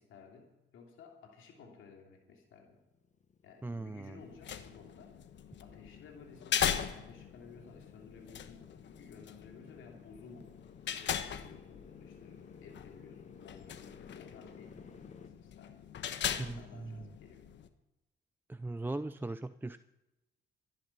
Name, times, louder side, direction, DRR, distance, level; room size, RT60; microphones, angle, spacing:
voice 1, 0.0-2.8 3.4-5.1 5.6-10.5 10.8-15.9 16.3-17.4, left 5 dB, 80° left, 2 dB, 3.1 m, -55 dB
Motorcycle, 2.6-15.3, left 5 dB, 35° left, 1.3 m, -57 dB
voice 2, 3.6-4.2 16.4-17.0 18.5-19.8, right 2 dB, 10° right, 12 dB, 0.5 m, -39 dB
sound 1, 4.2-17.7, left 9 dB, 65° left, 1.3 m, -40 dB
15.0 x 11.0 x 5.8 m, 1.0 s
cardioid pair, 90°, 20 cm